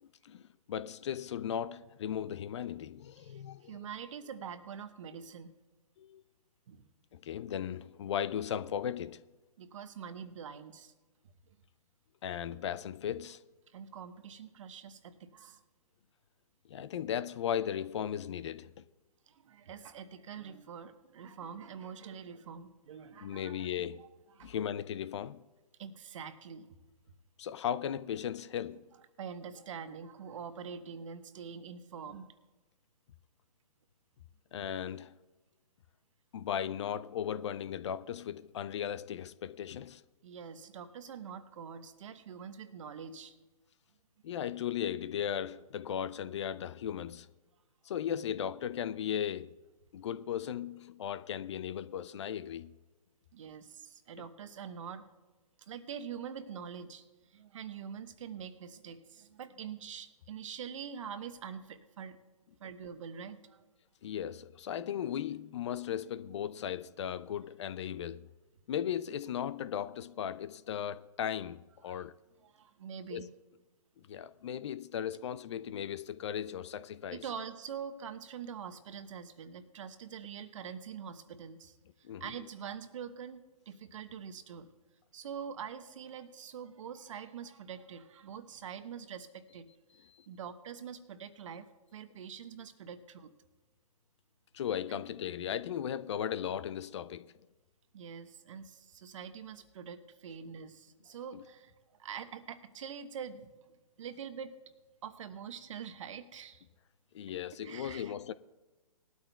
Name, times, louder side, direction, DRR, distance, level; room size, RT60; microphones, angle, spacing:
voice 1, 0.0-3.9 6.0-6.2 7.1-9.2 12.2-13.4 16.7-18.7 23.2-24.1 24.4-25.4 27.4-28.8 34.5-35.2 36.3-40.0 44.2-47.3 47.8-49.6 49.9-52.7 64.0-68.3 68.7-72.1 73.1-73.3 74.1-77.2 82.0-82.3 90.1-90.3 94.5-97.3 101.3-101.4 107.1-108.3, left 9 dB, 50° left, 0.5 m, -37 dB
voice 2, 3.2-5.5 6.7-6.8 9.6-10.9 13.7-15.6 19.3-23.7 24.0-24.1 24.3-24.5 25.8-26.7 29.2-32.3 40.2-43.3 53.3-55.0 55.6-57.0 57.3-62.2 62.6-63.6 71.9-72.0 72.4-73.3 77.1-81.8 82.2-84.7 85.1-89.7 90.3-93.3 94.9-95.0 97.9-101.7 102.0-103.5 104.0-104.5 105.0-106.6 107.6-108.1, right 7 dB, 55° right, 1.1 m, -45 dB
20.5 x 12.5 x 2.3 m
hypercardioid pair, 135°, 19 cm